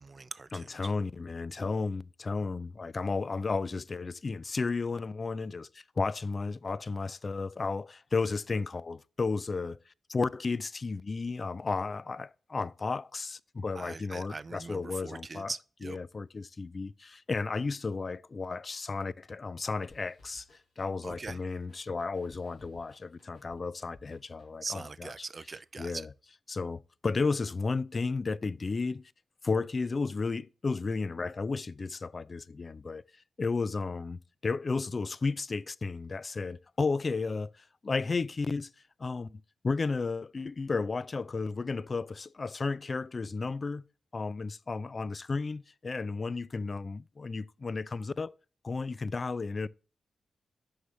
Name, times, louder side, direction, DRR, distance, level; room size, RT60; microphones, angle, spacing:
voice 1, 0.0-0.9 13.7-16.0 21.0-21.4 24.6-26.1, right 4 dB, 40° right, 0.4 m, -41 dB
voice 2, 0.5-15.5 15.8-20.5 20.8-25.1 25.8-26.1 26.5-29.0 29.4-33.0 33.4-38.7 39.0-43.8 44.1-48.3 48.6-49.7, left 4 dB, 40° left, 0.3 m, -33 dB
sound 1, 19.9-24.8, left 2 dB, 80° left, 3.0 m, -61 dB
6.5 x 5.5 x 3.1 m
cardioid pair, 65°, 0 cm